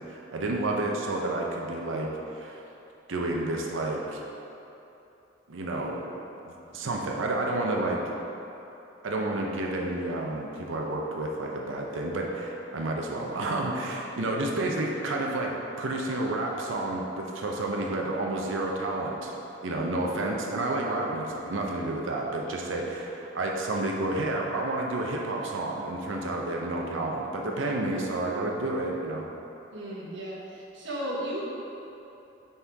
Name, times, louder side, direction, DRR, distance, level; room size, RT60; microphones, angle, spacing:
voice 1, 0.1-2.6 3.1-4.2 5.5-6.0 6.4-8.1 9.0-19.3 19.6-29.2, right 2 dB, 85° right, -1 dB, 0.7 m, -30 dB
voice 2, 29.7-31.4, equal, 65° right, -5 dB, 1.2 m, -35 dB
5.7 x 4.3 x 4.7 m, 3.0 s
head